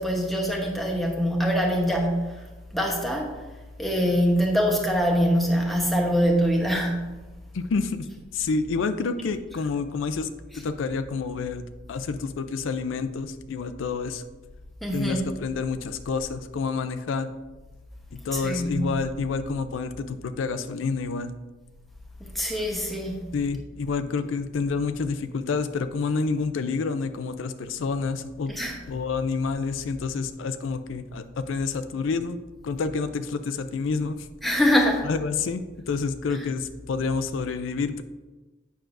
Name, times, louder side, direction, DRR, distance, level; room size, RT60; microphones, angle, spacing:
voice 1, 0.0-2.5 2.7-3.4 3.8-7.2 14.8-15.2 18.3-18.9 22.2-23.2 28.5-28.8 34.4-35.1, equal, ahead, 0 dB, 0.9 m, -24 dB
voice 2, 7.5-8.1 8.3-10.3 10.5-11.6 11.9-14.2 14.9-17.3 18.1-21.3 23.3-28.5 28.9-32.4 32.6-34.3 35.0-38.0, left 4 dB, 80° left, 10 dB, 0.4 m, -28 dB
9.0 x 6.0 x 2.6 m, 1.2 s
head